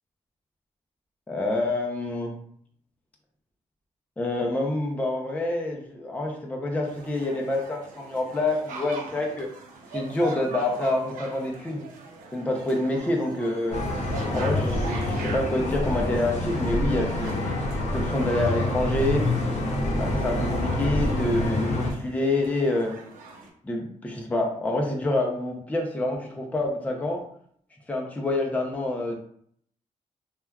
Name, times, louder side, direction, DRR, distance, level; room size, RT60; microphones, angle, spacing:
voice 1, 1.3-2.3 4.2-9.5 9.9-11.9 12.3-13.8 14.3-17.4 17.9-19.2 20.0-22.9 23.6-27.3 27.9-29.1, left 2 dB, 10° left, 0 dB, 0.5 m, -27 dB
sound 1, 6.8-23.5, right 3 dB, 85° right, 0.6 m, -42 dB
sound 2, 13.7-21.9, left 1 dB, 55° left, 0.7 m, -27 dB
3.2 x 2.2 x 2.3 m, 0.65 s
cardioid pair, 100°, 13 cm